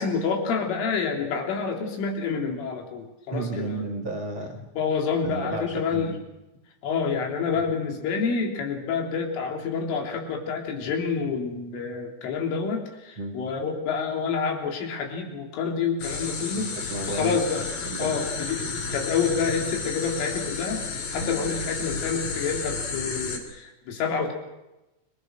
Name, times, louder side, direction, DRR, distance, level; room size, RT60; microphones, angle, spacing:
voice 1, 0.0-3.9 4.8-6.1 6.8-16.8 17.1-17.7 18.0-18.6 18.9-20.8 21.1-24.3, left 5 dB, 90° left, 2 dB, 5.8 m, -28 dB
voice 2, 3.3-4.7 5.2-6.2 7.5-7.6 13.2-13.4 16.7-18.2 21.2-21.3, right 2 dB, 75° right, 2 dB, 1.1 m, -33 dB
sound 1, 16.0-23.4, left 4 dB, 50° left, 4.2 m, -32 dB
29.5 x 21.0 x 6.3 m, 0.97 s
omnidirectional pair, 5.5 m